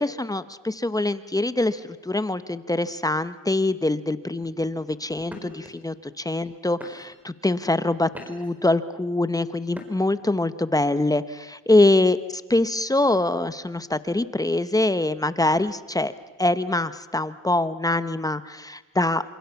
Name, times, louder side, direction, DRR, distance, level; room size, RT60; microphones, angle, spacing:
voice 1, 0.0-12.2 12.5-16.1 16.4-19.2, left 2 dB, 10° left, 13 dB, 1.0 m, -24 dB
sound 1, 5.3-5.7 6.4-6.5 6.8-7.3 7.8-8.6 9.7-10.2, left 1 dB, 5° right, 4.7 m, -42 dB
27.0 x 27.0 x 7.1 m, 1.1 s
cardioid pair, 90°, 30 cm